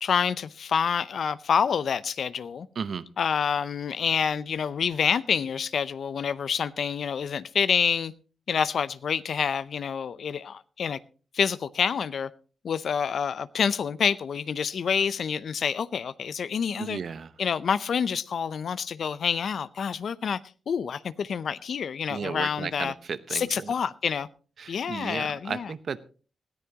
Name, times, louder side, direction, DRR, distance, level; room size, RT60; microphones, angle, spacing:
voice 1, 0.0-2.7 3.2-8.1 8.5-11.0 11.3-12.3 12.6-17.0 17.4-20.4 20.7-22.9 23.3-24.3 24.7-25.7, left 7 dB, 65° left, 0.6 m, -27 dB
voice 2, 16.8-17.3 22.1-23.7 24.6-26.0, right 6 dB, 60° right, 0.9 m, -34 dB
19.5 x 13.5 x 2.9 m
cardioid pair, 60°, 0 cm